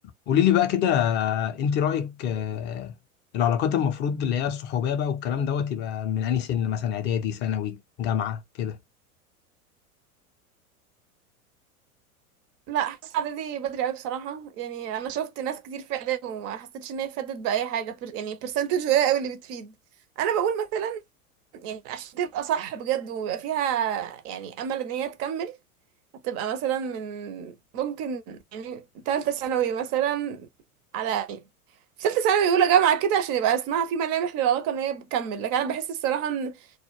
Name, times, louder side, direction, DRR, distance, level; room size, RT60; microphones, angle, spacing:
voice 1, 0.3-2.9 3.3-8.8, left 9 dB, 25° left, 0.4 m, -25 dB
voice 2, 12.7-19.7 20.2-21.0 21.6-25.5 26.2-30.5 30.9-31.4 32.0-36.6, right 9 dB, 35° right, 0.5 m, -27 dB
2.2 x 2.1 x 3.0 m
hypercardioid pair, 90°, 45 cm